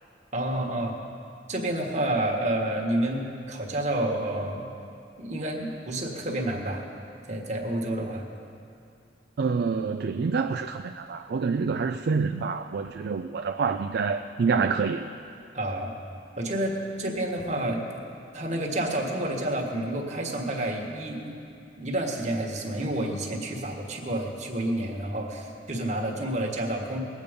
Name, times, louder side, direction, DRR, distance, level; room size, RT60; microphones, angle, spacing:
voice 1, 0.3-1.0 1.5-4.7 5.2-6.8 7.3-8.3 15.5-15.9 16.4-17.8 18.3-21.3 21.8-27.0, right 1 dB, 40° right, 1 dB, 1.6 m, -29 dB
voice 2, 9.4-15.1, right 5 dB, 60° right, 7 dB, 0.4 m, -27 dB
20.0 x 8.5 x 5.2 m, 2.6 s
head